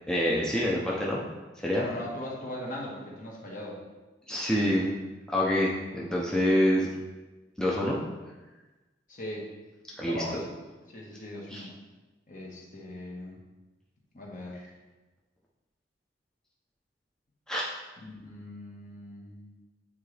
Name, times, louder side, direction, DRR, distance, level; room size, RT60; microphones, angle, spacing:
voice 1, 0.1-1.2 1.6-1.9 4.3-4.9 5.3-6.9 7.6-8.0 10.0-10.2 11.5-11.7 17.5-17.7, equal, 5° left, -4 dB, 0.7 m, -26 dB
voice 2, 1.7-3.8 9.1-9.5 10.0-10.5 10.9-11.7 12.3-13.4 14.1-14.7 18.0-19.5, left 1 dB, 45° left, -3 dB, 1.4 m, -39 dB
9.1 x 3.8 x 3.3 m, 1.2 s
head